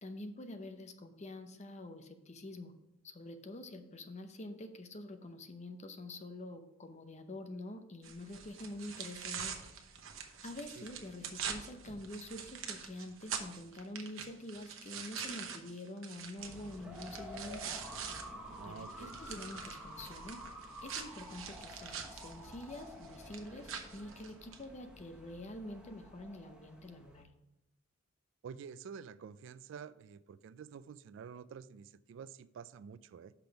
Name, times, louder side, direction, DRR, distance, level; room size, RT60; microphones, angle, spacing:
voice 1, 0.0-2.7 3.0-9.6 10.4-17.8 18.6-20.4 20.8-27.3, left 1 dB, 35° left, 7 dB, 0.7 m, -46 dB
sound 1, 8.0-18.2 18.6-24.6, right 7 dB, 85° right, 0.9 m, -45 dB
sound 2, 16.4-27.2, equal, 5° right, 0.9 m, -50 dB
voice 2, 18.5-19.2 28.4-33.3, right 6 dB, 65° right, 16 dB, 0.3 m, -49 dB
6.0 x 5.1 x 5.7 m, 0.93 s
head